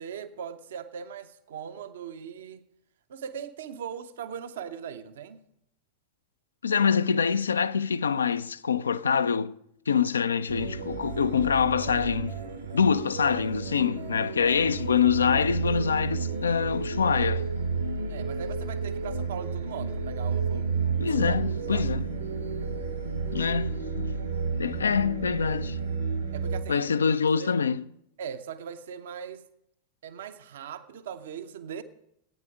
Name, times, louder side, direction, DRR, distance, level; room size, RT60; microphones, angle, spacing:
voice 1, 0.0-2.6 3.1-5.4 6.7-6.8 18.1-21.4 21.7-21.9 26.3-26.9 27.4-27.5 28.2-29.5 30.0-31.8, right 8 dB, 60° right, 0.7 m, -39 dB
voice 2, 6.6-9.5 9.9-12.4 12.7-17.4 21.0-22.1 23.3-24.1 24.6-25.8 26.7-27.8, left 6 dB, 70° left, 0.3 m, -25 dB
sound 1, 10.5-26.6, right 4 dB, 75° right, 1.4 m, -31 dB
14.0 x 9.1 x 4.9 m
figure-of-eight pair, 90°, 0 cm